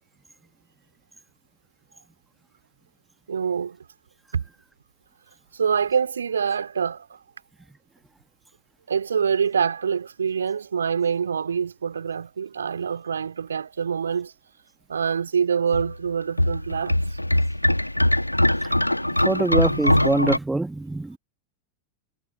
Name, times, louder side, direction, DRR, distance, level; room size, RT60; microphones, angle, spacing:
voice 1, 3.3-3.8 4.3-4.4 5.5-7.1 8.9-14.3 14.9-16.9, right 7 dB, 70° right, 3.1 m, -25 dB
sound 1, 15.7-20.4, left 1 dB, 85° left, 1.5 m, -22 dB
voice 2, 19.2-21.2, right 2 dB, 5° right, 1.9 m, -24 dB
figure-of-eight pair, 90°, 0 cm